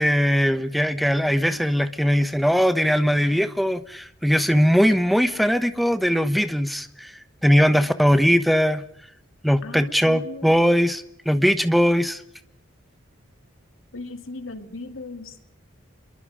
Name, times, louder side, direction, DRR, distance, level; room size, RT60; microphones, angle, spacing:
voice 1, 0.0-7.1 7.4-8.8 9.4-12.2, equal, ahead, 10 dB, 1.1 m, -20 dB
voice 2, 9.6-10.6 13.9-15.4, left 2 dB, 85° left, 6 dB, 2.7 m, -37 dB
27.5 x 23.0 x 5.1 m, 0.72 s
head